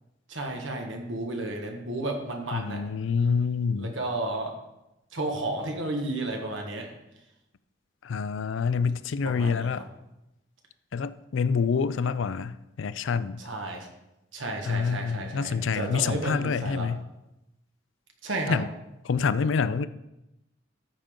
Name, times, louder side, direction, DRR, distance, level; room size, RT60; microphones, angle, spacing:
voice 1, 0.3-2.8 3.8-4.5 5.1-7.0 9.2-9.8 13.4-13.9 14.3-16.9 18.2-18.6, right 2 dB, 75° right, 1.5 m, -32 dB
voice 2, 2.5-3.9 8.0-9.9 10.9-13.4 14.6-17.0 18.5-18.7 19.0-19.9, left 5 dB, 75° left, 0.4 m, -27 dB
13.0 x 5.2 x 3.7 m
head